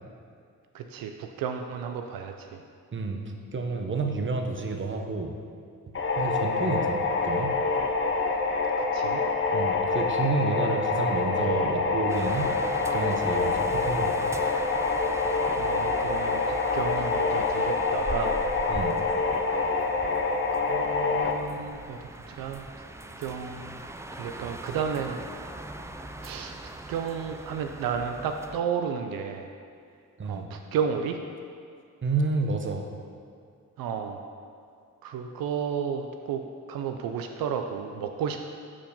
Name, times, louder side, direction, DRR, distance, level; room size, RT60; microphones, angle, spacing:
voice 1, 0.7-2.6 6.7-6.9 8.9-9.2 15.5-18.4 20.7-22.0 22.3-22.7 23.2-23.8 24.1-25.2 26.2-29.5 30.2-31.2 33.8-34.2 35.0-38.4, right 7 dB, 85° right, 5 dB, 0.5 m, -32 dB
voice 2, 2.9-5.3 6.2-7.6 9.5-14.4 18.7-18.9 30.2-30.5 32.0-32.9, right 3 dB, 35° right, 4 dB, 0.9 m, -30 dB
sound 1, 5.9-21.3, left 4 dB, 40° left, 0.8 m, -26 dB
sound 2, 12.1-28.6, right 2 dB, 10° right, 0.4 m, -41 dB
7.4 x 4.5 x 5.4 m, 2.2 s
cardioid pair, 60°, 34 cm